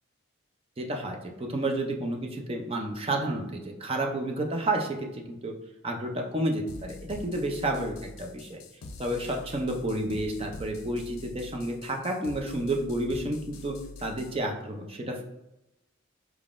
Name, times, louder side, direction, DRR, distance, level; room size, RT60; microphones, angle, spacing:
voice 1, 0.8-5.5 5.8-8.6 9.0-15.2, right 1 dB, 25° right, 2 dB, 0.5 m, -31 dB
sound 1, 6.7-14.4, left 3 dB, 80° left, 0.5 m, -45 dB
4.7 x 3.6 x 2.5 m, 0.91 s
head